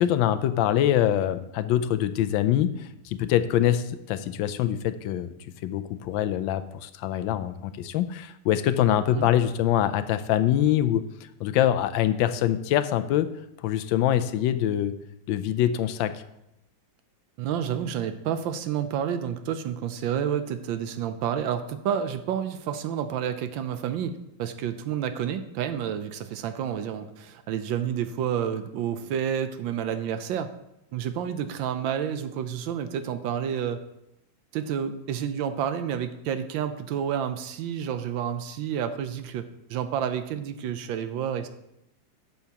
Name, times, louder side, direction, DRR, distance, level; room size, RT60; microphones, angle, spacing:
voice 1, 0.0-5.3 5.6-13.3 13.6-14.9 15.3-16.2, left 11 dB, 85° left, 12 dB, 1.3 m, -24 dB
voice 2, 17.4-30.5 30.9-33.8 34.5-39.4 39.7-41.5, right 9 dB, 85° right, 9 dB, 1.4 m, -29 dB
12.0 x 7.1 x 2.9 m, 0.84 s
omnidirectional pair, 2.1 m